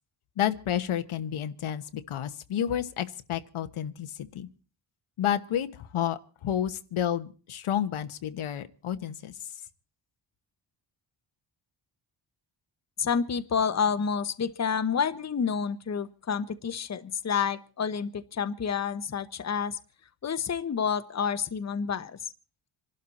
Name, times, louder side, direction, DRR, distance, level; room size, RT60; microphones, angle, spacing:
voice 1, 0.4-4.5 5.2-9.3, left 10 dB, 85° left, 9 dB, 1.2 m, -30 dB
voice 2, 13.0-19.8 20.2-22.2, left 6 dB, 35° left, 11 dB, 0.9 m, -29 dB
26.5 x 12.0 x 4.2 m, 0.36 s
wide cardioid pair, 110°, 48 cm